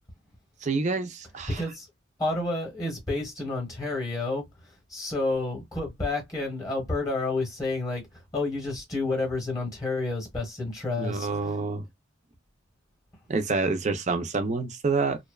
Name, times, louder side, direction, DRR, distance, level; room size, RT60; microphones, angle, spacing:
voice 1, 0.6-1.6 11.0-11.8 13.3-15.2, right 4 dB, 35° right, 0.4 m, -27 dB
voice 2, 1.5-1.9 2.2-4.4 4.9-8.0 8.3-11.3, left 2 dB, 15° left, 0.9 m, -29 dB
2.6 x 2.1 x 2.3 m
head